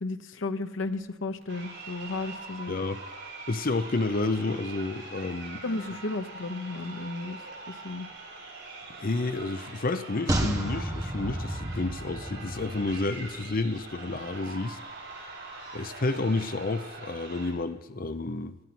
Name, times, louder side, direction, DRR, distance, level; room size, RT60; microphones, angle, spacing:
voice 1, 0.0-2.8 5.6-7.4 7.7-8.1, left 3 dB, 80° left, 8 dB, 0.8 m, -34 dB
Crowd, 1.4-17.5, right 3 dB, 70° right, 7.2 m, -43 dB
voice 2, 2.7-3.0 3.5-5.6 9.0-14.8 15.7-18.6, left 2 dB, 50° left, 11 dB, 0.7 m, -30 dB
sound 1, 10.3-13.7 14.0-14.1, right 1 dB, 20° right, 1.8 m, -32 dB
17.5 x 13.5 x 6.0 m, 0.99 s
head